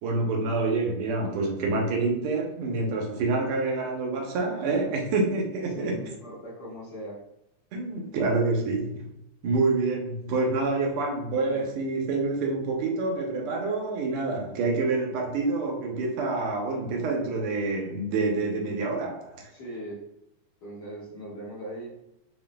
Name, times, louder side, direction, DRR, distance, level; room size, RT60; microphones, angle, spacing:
voice 1, 0.0-6.0 7.7-9.1 9.4-19.4, right 3 dB, 75° right, 1.3 m, -27 dB
voice 2, 4.4-4.9 5.7-7.2 11.5-11.8 19.5-20.0 20.6-22.0, equal, 50° left, 1.2 m, -40 dB
7.8 x 2.6 x 2.2 m
omnidirectional pair, 3.6 m